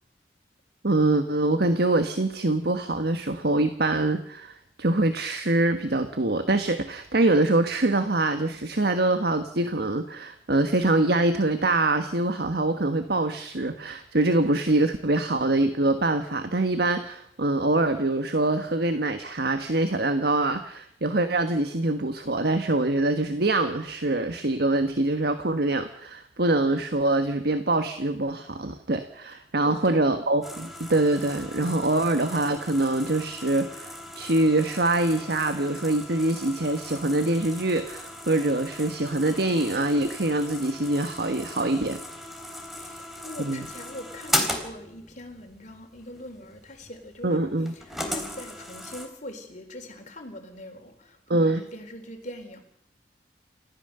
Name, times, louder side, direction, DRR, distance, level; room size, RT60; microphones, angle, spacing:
voice 1, 0.8-42.0 43.4-43.6 47.2-47.7 51.3-51.6, right 2 dB, 60° right, 8 dB, 1.4 m, -24 dB
voice 2, 29.6-30.2 42.8-52.6, left 1 dB, 45° left, 5 dB, 3.9 m, -42 dB
sound 1, 30.4-49.1, left 1 dB, ahead, 3.5 m, -37 dB
29.5 x 14.5 x 6.8 m, 0.74 s
head